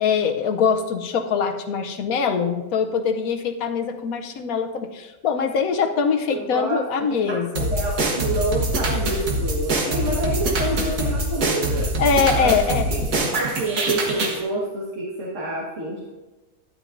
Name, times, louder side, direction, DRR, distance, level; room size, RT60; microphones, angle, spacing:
voice 1, 0.0-7.7 12.0-12.9, left 6 dB, 75° left, 6 dB, 1.1 m, -23 dB
voice 2, 6.3-11.9 12.4-16.1, right 1 dB, 55° right, -5 dB, 1.9 m, -28 dB
sound 1, 7.6-14.4, right 1 dB, 90° right, 1.8 m, -24 dB
12.0 x 10.5 x 2.6 m, 1.2 s
omnidirectional pair, 1.6 m